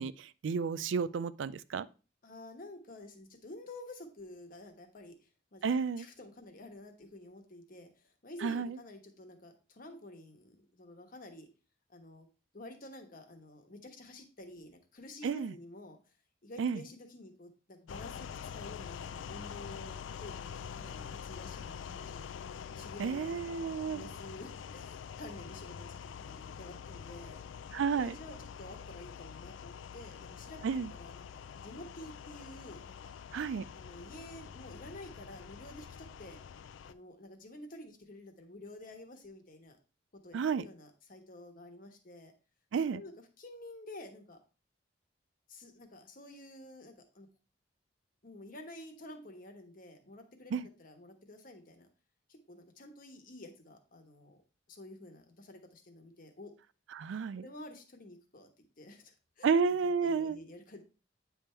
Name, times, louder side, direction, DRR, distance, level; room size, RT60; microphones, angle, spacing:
voice 1, 0.0-1.9 5.6-6.1 8.4-8.8 15.2-15.5 16.6-16.8 23.0-24.1 27.7-28.2 30.6-30.9 33.3-33.6 40.3-40.7 42.7-43.0 50.5-50.7 56.9-57.5 59.4-60.4, right 5 dB, 75° right, 0.4 m, -31 dB
voice 2, 2.2-5.1 5.5-11.5 11.9-12.3 12.5-16.0 16.4-22.3 22.7-23.6 23.9-27.4 27.9-33.1 33.8-36.4 36.8-39.8 40.1-42.3 42.9-43.1 43.4-44.4 45.5-47.3 48.2-51.9 52.5-54.4 54.7-56.5 57.4-58.5 58.8-59.5 60.0-60.8, left 1 dB, 50° left, 1.2 m, -50 dB
sound 1, 17.9-36.9, left 7 dB, 85° left, 0.4 m, -45 dB
8.8 x 3.5 x 4.3 m
head